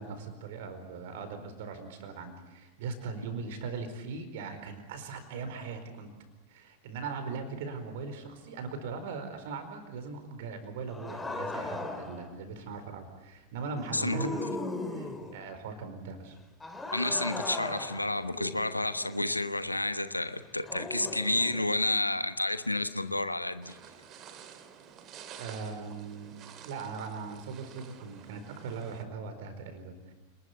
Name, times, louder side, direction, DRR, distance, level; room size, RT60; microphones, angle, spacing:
voice 1, 0.0-6.1 6.5-14.5 14.9-16.4 25.4-26.3 26.6-30.1, right 4 dB, 55° right, 8 dB, 4.6 m, -40 dB
sound 1, 10.9-12.3 13.8-15.5 16.6-19.3 20.7-21.7, left 2 dB, 10° left, 3.1 m, -38 dB
voice 2, 13.9-14.3 16.9-23.8, left 2 dB, 85° left, 12 dB, 1.2 m, -30 dB
sound 2, 23.6-29.0, right 8 dB, 35° right, 2.5 m, -50 dB
29.0 x 20.5 x 8.2 m, 1.0 s
figure-of-eight pair, 90°, 0 cm